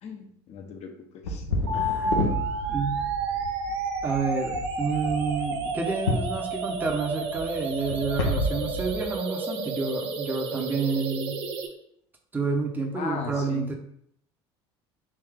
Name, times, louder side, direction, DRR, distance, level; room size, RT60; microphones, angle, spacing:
voice 1, 0.0-1.4 12.9-13.7, left 5 dB, 50° left, 4 dB, 0.7 m, -37 dB
sound 1, 1.2-9.0, left 2 dB, 85° left, 0.6 m, -31 dB
voice 2, 1.7-2.4 2.7-3.0 4.0-11.4 12.3-13.7, right 4 dB, 15° right, 1 dB, 0.7 m, -29 dB
sound 2, 1.7-11.7, right 3 dB, 75° right, 0.5 m, -31 dB
3.4 x 2.7 x 3.5 m, 0.69 s
hypercardioid pair, 70°, 14 cm